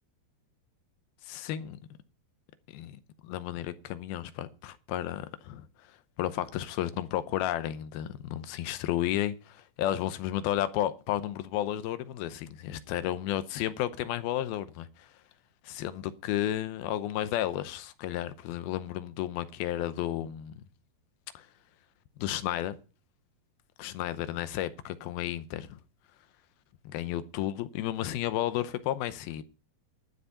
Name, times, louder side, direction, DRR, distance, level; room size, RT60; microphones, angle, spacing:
voice 1, 1.3-1.8 2.7-3.0 3.2-5.7 6.2-15.1 15.6-20.6 21.3-21.5 22.2-22.8 23.8-25.8 26.9-29.4, left 12 dB, 80° left, 2.6 m, -32 dB
12.0 x 8.2 x 5.6 m
omnidirectional pair, 4.5 m